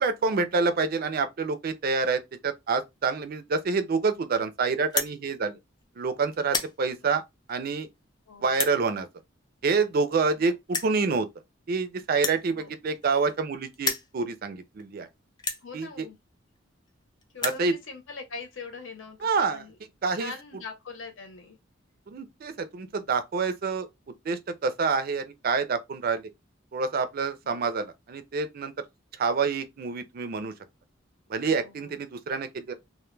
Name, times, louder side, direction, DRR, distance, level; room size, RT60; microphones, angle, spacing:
voice 1, 0.0-5.6 6.0-7.2 7.5-7.9 8.4-9.1 9.6-11.3 11.7-15.1 15.7-16.1 17.4-17.7 19.2-19.6 20.0-20.3 22.1-23.9 24.3-26.3 26.7-28.7 29.2-30.5 31.3-32.7, right 4 dB, 50° right, 0.4 m, -27 dB
sound 1, 4.9-5.1 5.8-6.0 6.3-6.7 7.5-7.6 8.5-8.8 9.8-9.9 10.1-10.2 10.7-11.0 12.1-13.5 13.7-14.1 14.8-14.9 15.4-15.6 16.6-16.7 16.9-17.0 17.2-17.6, left 4 dB, 20° left, 0.3 m, -30 dB
voice 2, 8.3-8.6 10.4-10.6 12.5-12.7 15.6-16.2 17.3-19.8 20.1-21.6 27.4-27.7 31.5-32.0, left 4 dB, 75° left, 0.8 m, -42 dB
2.2 x 2.1 x 3.1 m
head